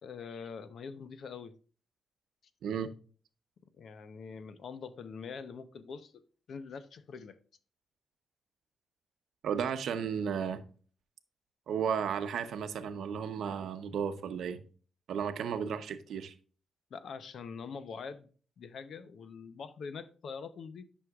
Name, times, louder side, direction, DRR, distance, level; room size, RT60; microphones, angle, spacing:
voice 1, 0.0-1.5 3.8-6.1 6.5-7.4 16.9-18.3 18.6-20.8, left 5 dB, 55° left, 0.7 m, -44 dB
voice 2, 9.4-10.6 11.7-14.6 15.1-16.3, right 7 dB, 75° right, 0.8 m, -34 dB
11.0 x 6.2 x 2.4 m
wide cardioid pair, 170°, 0 cm